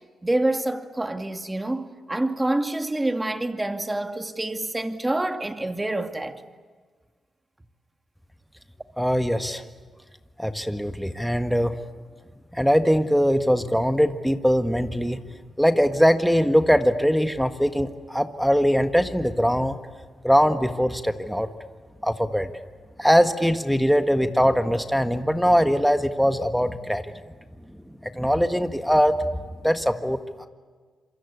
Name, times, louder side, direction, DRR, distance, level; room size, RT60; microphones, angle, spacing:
voice 1, 0.2-6.4, right 1 dB, 15° right, 2.2 m, -27 dB
voice 2, 9.0-9.6 10.4-11.8 12.5-15.2 15.6-19.8 20.2-21.5 22.0-22.5 23.0-27.0 27.9-29.3 29.6-30.5, equal, ahead, 1.6 m, -21 dB
27.0 x 24.5 x 8.5 m
cardioid pair, 75°, 0 cm